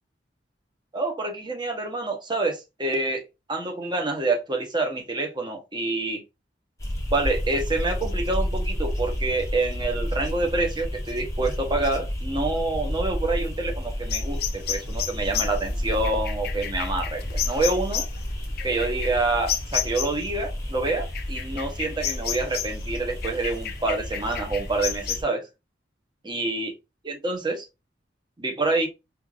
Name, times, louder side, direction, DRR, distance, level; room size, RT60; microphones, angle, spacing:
voice 1, 0.9-3.2 3.5-6.2 7.1-18.0 18.6-25.5 26.2-26.7 27.0-27.6 28.4-28.9, right 2 dB, 25° right, 0.8 m, -27 dB
sound 1, 6.8-25.2, equal, 15° left, 0.8 m, -31 dB
sound 2, 14.1-20.3 20.9-22.8 23.2-25.2, left 10 dB, 55° left, 0.5 m, -31 dB
4.4 x 2.4 x 2.3 m
head